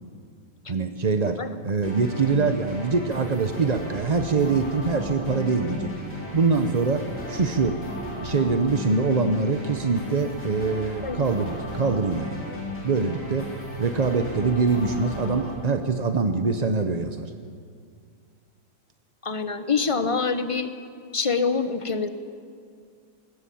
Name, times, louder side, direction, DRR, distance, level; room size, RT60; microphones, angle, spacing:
voice 1, 0.7-1.4 1.6-5.9 6.3-7.8 8.2-13.5 13.8-17.3, right 4 dB, 40° right, 7 dB, 0.6 m, -24 dB
sound 1, 1.8-15.5, left 1 dB, 45° left, 4.8 m, -36 dB
voice 2, 19.2-20.7 21.1-22.1, left 5 dB, 25° left, 10 dB, 0.7 m, -25 dB
20.5 x 17.0 x 8.6 m, 2.2 s
omnidirectional pair, 1.9 m